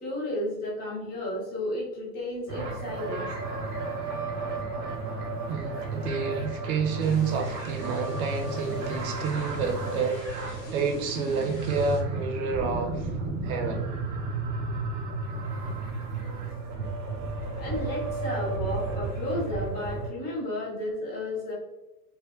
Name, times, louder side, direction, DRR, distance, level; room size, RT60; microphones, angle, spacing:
voice 1, 0.0-3.3 17.6-21.5, left 1 dB, 20° left, -5 dB, 0.6 m, -33 dB
sound 1, 2.5-20.1, right 3 dB, 20° right, 0.6 m, -33 dB
voice 2, 5.5-13.2 13.4-13.9, right 5 dB, 60° right, 2 dB, 0.7 m, -29 dB
Thunder / Rain, 7.0-12.0, left 2 dB, 70° left, 1.0 m, -47 dB
3.1 x 2.1 x 2.3 m, 1.0 s
supercardioid pair, 160°, 49 cm